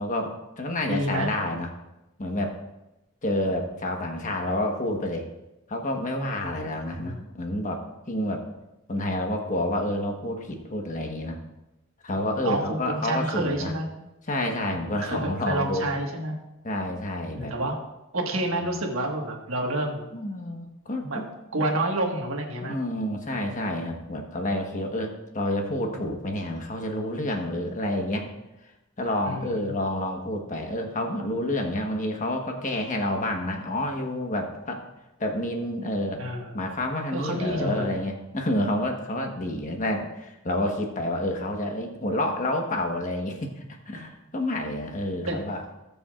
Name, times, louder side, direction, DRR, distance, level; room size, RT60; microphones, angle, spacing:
voice 1, 0.0-1.7 2.2-2.5 3.2-5.3 5.7-7.8 8.1-8.4 8.9-11.4 12.0-13.7 14.3-15.8 16.6-17.5 18.6-18.7 20.1-21.3 21.6-21.7 22.6-28.3 29.0-34.8 35.2-36.3 36.5-45.6, left 1 dB, 35° left, 2 dB, 1.3 m, -29 dB
voice 2, 0.9-1.3 6.6-7.2 12.4-12.6 12.9-13.9 15.0-16.4 17.3-17.8 18.1-20.0 21.0-21.2 21.5-22.8 29.2-29.7 36.2-36.6 37.1-38.0 45.3-45.4, right 1 dB, 70° right, 1 dB, 1.6 m, -29 dB
18.0 x 7.1 x 2.5 m, 0.95 s
head